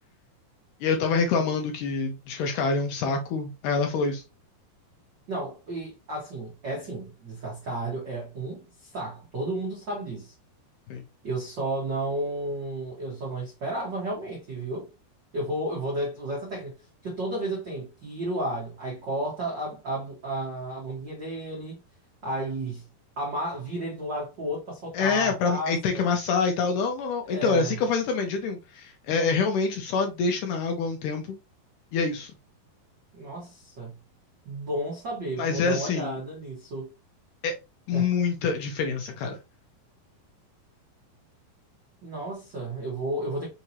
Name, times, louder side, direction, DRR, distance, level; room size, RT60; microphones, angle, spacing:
voice 1, 0.8-4.2 10.9-11.0 24.9-31.2 31.9-32.3 35.4-36.2 37.4-37.5 37.9-39.4, left 4 dB, 80° left, 2.0 m, -26 dB
voice 2, 5.3-10.3 11.2-14.9 15.3-16.7 17.0-21.8 22.2-22.8 23.2-26.1 27.3-27.8 33.1-33.9 34.4-36.9 37.9-38.1 42.0-43.5, right 1 dB, 65° right, 1.0 m, -32 dB
5.6 x 2.8 x 2.8 m
omnidirectional pair, 4.2 m